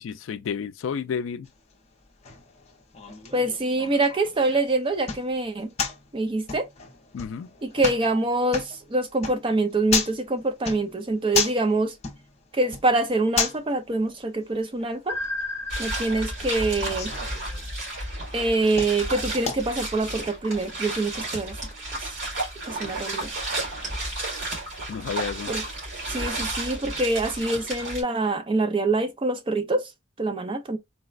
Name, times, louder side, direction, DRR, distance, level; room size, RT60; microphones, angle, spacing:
voice 1, 0.0-1.5 7.1-7.5 24.9-25.5, left 6 dB, 70° left, 0.3 m, -31 dB
sound 1, 1.4-20.0, left 6 dB, 30° left, 0.6 m, -35 dB
voice 2, 3.3-5.7 6.1-6.7 7.6-11.9 12.5-15.2 15.8-17.1 18.3-21.6 22.0-22.1 22.7-23.3 25.5-25.6 26.1-29.9 30.2-30.8, right 2 dB, 25° right, 0.4 m, -25 dB
sound 2, 15.1-18.0, left 1 dB, 10° left, 0.9 m, -35 dB
sound 3, 15.7-28.0, right 2 dB, 65° right, 2.3 m, -32 dB
4.0 x 2.1 x 2.3 m
head